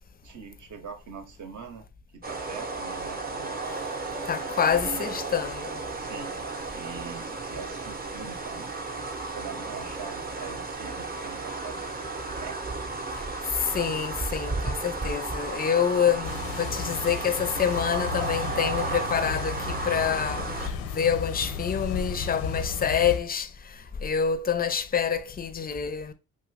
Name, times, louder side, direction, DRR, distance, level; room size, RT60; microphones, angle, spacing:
voice 1, 0.2-1.9 2.1-3.5 4.6-5.1 6.0-6.3 6.7-8.7 9.3-12.0 12.4-12.8, right 6 dB, 55° right, 0.8 m, -42 dB
sound 1, 2.2-20.7, right 3 dB, 25° right, 0.6 m, -34 dB
voice 2, 4.3-5.8 13.6-20.5 20.9-23.5 24.0-26.1, left 7 dB, 25° left, 0.4 m, -27 dB
sound 2, 16.2-23.2, left 5 dB, 85° left, 0.6 m, -34 dB
2.8 x 2.5 x 3.2 m
supercardioid pair, 60°, 36 cm